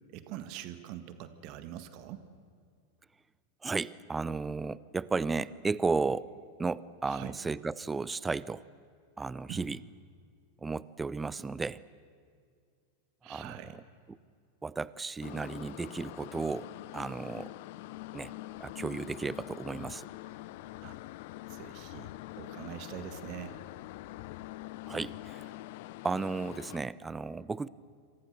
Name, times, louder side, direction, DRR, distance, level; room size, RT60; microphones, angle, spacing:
voice 1, 0.1-2.2 7.1-7.3 9.5-9.6 13.2-13.8 20.8-21.0 21.5-22.1 22.3-23.6, right 12 dB, 40° right, 11 dB, 1.7 m, -43 dB
voice 2, 3.6-6.3 6.6-8.6 9.2-9.8 10.6-11.8 13.3-13.8 14.1-14.2 14.6-17.5 18.1-18.3 18.6-20.1 24.9-25.6 26.0-27.7, right 4 dB, 10° right, 20 dB, 0.6 m, -34 dB
sound 1, 15.2-26.8, left 17 dB, 50° left, 0.6 m, -45 dB
27.5 x 26.5 x 6.7 m, 2.2 s
figure-of-eight pair, 90°, 0 cm